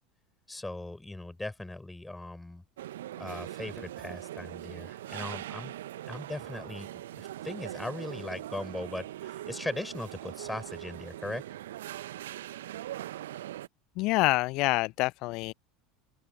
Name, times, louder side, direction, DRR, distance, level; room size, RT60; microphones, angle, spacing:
voice 1, 0.5-2.6 3.2-5.7 6.1-11.4, left 2 dB, 10° left, 7.4 m, -39 dB
sound 1, 2.8-13.7, right 13 dB, 65° right, 1.4 m, -41 dB
voice 2, 14.0-15.5, left 22 dB, 50° left, 0.6 m, -27 dB
open air
figure-of-eight pair, 75°, 0 cm